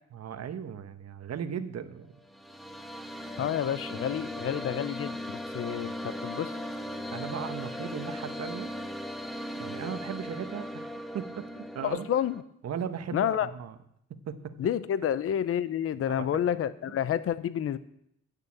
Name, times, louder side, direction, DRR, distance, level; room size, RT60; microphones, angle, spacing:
voice 1, 0.1-2.1 3.4-3.5 7.1-8.7 9.6-10.8 11.1-12.1 12.6-13.7 14.3-14.5 16.1-16.3, right 8 dB, 55° right, 9 dB, 1.2 m, -37 dB
sound 1, 2.2-12.4, equal, ahead, 1.2 m, -38 dB
voice 2, 3.4-6.6 11.8-12.4 13.1-13.5 14.6-17.8, left 9 dB, 50° left, 15 dB, 0.7 m, -29 dB
11.5 x 6.8 x 8.6 m, 0.73 s
cardioid pair, 90°, 30 cm